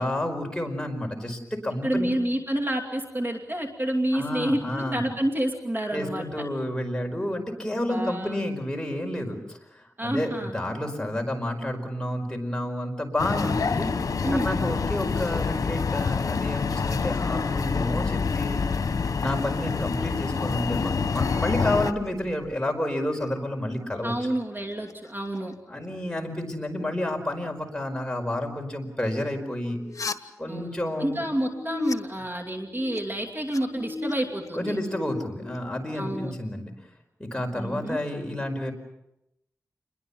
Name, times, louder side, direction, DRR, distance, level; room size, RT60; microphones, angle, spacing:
voice 1, 0.0-2.1 4.1-5.1 5.9-13.9 14.3-18.6 19.2-24.3 25.7-29.8 30.4-31.2 34.5-36.7 37.2-38.7, left 1 dB, 15° left, 2 dB, 4.9 m, -30 dB
voice 2, 1.8-6.2 7.9-8.3 10.0-10.5 14.2-14.6 24.0-25.5 30.5-34.8 35.9-36.3 37.5-38.0, right 1 dB, 35° right, 2 dB, 2.6 m, -29 dB
sound 1, 13.2-21.9, left 5 dB, 85° left, 1.1 m, -27 dB
sound 2, 17.8-22.6 23.0-23.7 24.0-26.2 29.6-30.1 31.3-31.9 32.4-33.0 33.3-36.3, left 3 dB, 70° left, 1.4 m, -38 dB
28.5 x 21.5 x 7.1 m, 0.84 s
wide cardioid pair, 105°, 6 cm